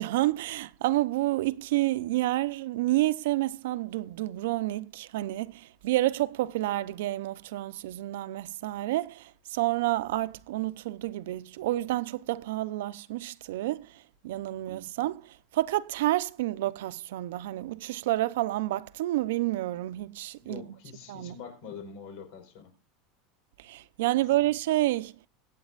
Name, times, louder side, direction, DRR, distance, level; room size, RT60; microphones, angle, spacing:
voice 1, 0.0-20.6 21.1-21.4 23.6-25.1, right 16 dB, 85° right, 0.7 m, -29 dB
voice 2, 20.4-22.8, left 6 dB, 60° left, 4.8 m, -45 dB
23.5 x 8.9 x 2.5 m
supercardioid pair, 170°, 0 cm